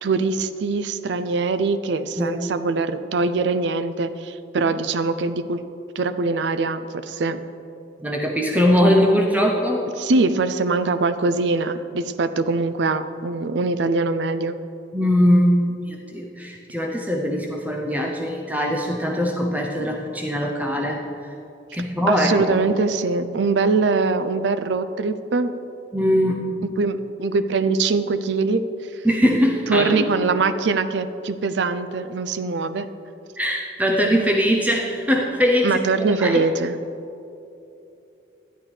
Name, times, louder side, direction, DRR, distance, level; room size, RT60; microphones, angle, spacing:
voice 1, 0.0-5.6 6.0-7.4 10.0-14.6 22.1-25.5 26.8-28.6 28.9-29.0 29.7-32.9 35.6-36.7, right 3 dB, 70° right, 11 dB, 0.4 m, -22 dB
voice 2, 8.0-9.9 14.9-21.3 21.7-22.5 25.9-26.5 29.0-30.1 33.4-35.8 36.2-36.5, equal, 10° right, 0 dB, 0.5 m, -21 dB
13.0 x 9.0 x 3.3 m, 2.8 s
head